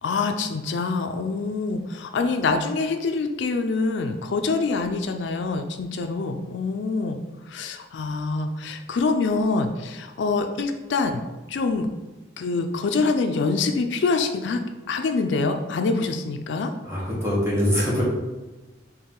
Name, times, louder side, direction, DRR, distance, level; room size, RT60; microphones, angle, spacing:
voice 1, 0.0-7.2 7.5-11.2 11.5-11.9 12.4-14.6 14.9-16.7, left 3 dB, 75° left, 6 dB, 0.4 m, -25 dB
voice 2, 16.8-18.0, equal, 15° right, -6 dB, 1.3 m, -23 dB
4.5 x 3.0 x 3.8 m, 1.2 s
head